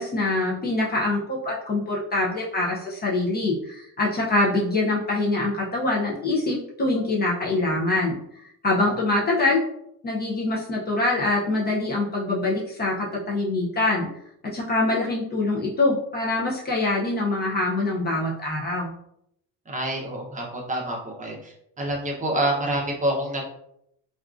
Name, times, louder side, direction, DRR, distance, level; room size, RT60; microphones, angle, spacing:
voice 1, 0.0-8.2 8.6-9.6 10.0-14.1 14.5-18.9, left 2 dB, 25° left, -4 dB, 0.5 m, -24 dB
voice 2, 19.7-23.4, right 1 dB, 20° right, -1 dB, 0.6 m, -27 dB
3.5 x 2.4 x 2.4 m, 0.75 s
cardioid pair, 145°, 36 cm